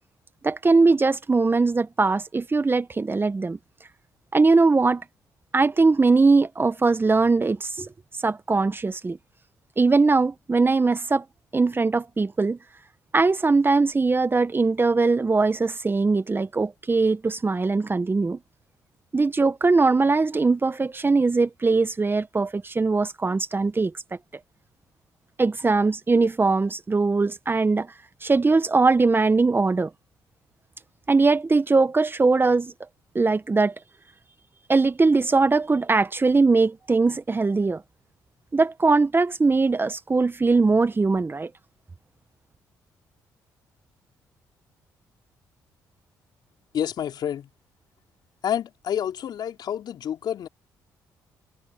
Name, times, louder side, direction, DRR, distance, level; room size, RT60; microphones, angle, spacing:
voice 1, 0.4-3.6 4.3-5.0 5.5-7.9 8.2-9.2 9.8-11.2 11.5-12.6 13.1-18.4 19.1-23.9 25.4-27.9 28.2-29.9 31.1-32.7 33.1-33.7 34.7-37.8 38.5-41.5, right 3 dB, 30° right, 1.3 m, -21 dB
voice 2, 46.7-47.5 48.4-50.5, left 9 dB, 65° left, 4.4 m, -28 dB
supercardioid pair, 55°, 8 cm